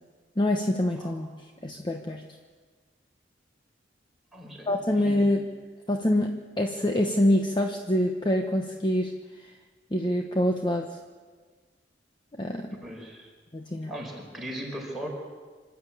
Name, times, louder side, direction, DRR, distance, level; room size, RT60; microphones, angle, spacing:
voice 1, 0.4-1.3 1.6-2.2 4.7-5.4 5.9-9.1 9.9-10.9 12.4-12.7 13.5-13.9, left 1 dB, 25° left, 3 dB, 1.1 m, -25 dB
voice 2, 4.3-4.7 5.0-5.3 12.8-13.3 13.9-15.1, equal, ahead, -3 dB, 5.3 m, -38 dB
26.5 x 11.5 x 8.6 m, 1.5 s
head